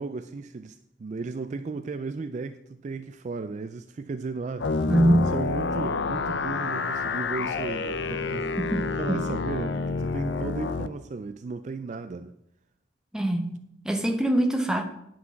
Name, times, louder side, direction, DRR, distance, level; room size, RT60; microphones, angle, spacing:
voice 1, 0.0-4.9 5.3-12.3, right 4 dB, 35° right, 0.3 m, -35 dB
sound 1, 4.6-10.9, left 4 dB, 60° left, 0.5 m, -28 dB
voice 2, 4.9-5.4 8.6-9.2 13.1-14.8, right 1 dB, 5° right, 0.8 m, -24 dB
9.6 x 6.1 x 5.8 m
head